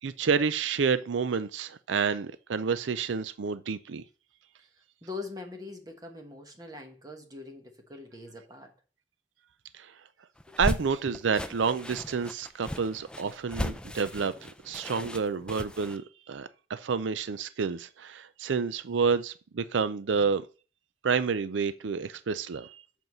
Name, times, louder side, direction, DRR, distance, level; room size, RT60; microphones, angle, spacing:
voice 1, 0.0-4.0 9.7-9.9 10.6-20.5 21.0-22.8, right 5 dB, 85° right, 0.5 m, -29 dB
voice 2, 4.6-8.7 10.5-10.6 11.1-11.2 15.0-15.1, left 3 dB, 20° right, 1.1 m, -43 dB
sound 1, 10.4-16.0, left 1 dB, 5° left, 0.4 m, -36 dB
7.9 x 4.6 x 5.3 m
head